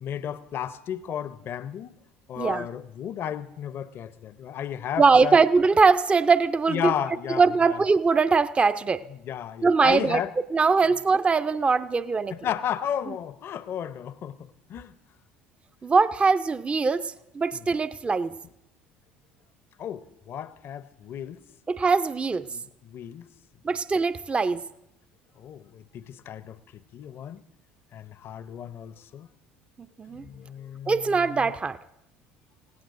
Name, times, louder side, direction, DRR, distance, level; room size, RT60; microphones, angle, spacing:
voice 1, 0.0-1.9 2.3-5.4 6.7-7.8 9.3-10.3 12.3-14.9 19.8-21.4 22.5-23.3 25.4-26.6 26.9-27.4 27.9-29.3 30.2-31.4, left 9 dB, 45° left, 0.7 m, -34 dB
voice 2, 2.4-2.7 5.0-6.9 7.4-9.0 9.6-10.2 10.5-12.3 15.8-18.3 21.7-22.5 23.6-24.6 30.0-30.2 30.9-31.8, right 4 dB, 20° right, 0.5 m, -21 dB
28.5 x 17.5 x 2.6 m
figure-of-eight pair, 60°, 5 cm